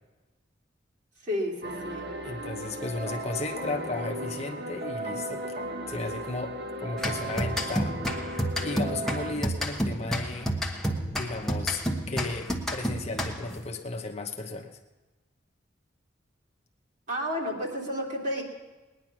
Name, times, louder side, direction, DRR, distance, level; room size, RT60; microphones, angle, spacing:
voice 1, 1.2-2.1 17.1-18.4, equal, 45° right, -2 dB, 3.0 m, -31 dB
sound 1, 1.6-9.3, right 1 dB, 60° right, 1.6 m, -36 dB
voice 2, 2.2-5.4 5.9-8.0 8.6-10.5 11.1-14.8, left 3 dB, 35° left, 3 dB, 1.0 m, -35 dB
sound 2, 7.0-13.6, equal, ahead, 1.1 m, -30 dB
20.0 x 10.0 x 6.0 m, 1.2 s
head